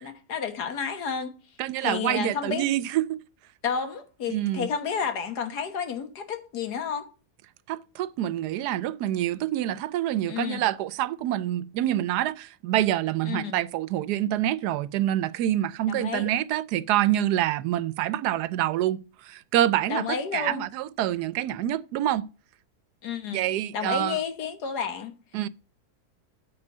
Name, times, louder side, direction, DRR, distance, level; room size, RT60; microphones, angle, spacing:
voice 1, 0.0-1.4 1.8-2.7 3.6-7.1 10.3-10.7 13.3-13.6 15.9-16.3 19.9-20.6 23.0-23.5 23.7-25.2, left 6 dB, 85° left, 1.8 m, -31 dB
voice 2, 1.6-3.2 4.3-4.7 7.7-22.2 23.3-24.2 25.3-25.5, right 13 dB, 85° right, 1.1 m, -26 dB
8.8 x 4.1 x 6.7 m
omnidirectional pair, 1.7 m